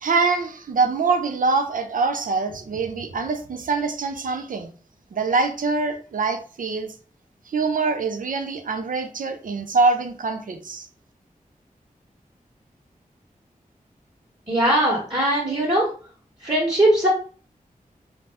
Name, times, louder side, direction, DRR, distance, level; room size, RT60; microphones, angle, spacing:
voice 1, 0.0-4.7 5.1-6.9 7.5-10.9, right 4 dB, 65° right, 6 dB, 0.5 m, -24 dB
voice 2, 14.5-15.9 16.4-17.1, right 1 dB, 30° right, -5 dB, 1.3 m, -20 dB
2.6 x 2.1 x 3.3 m, 0.42 s
cardioid pair, 45°, 15 cm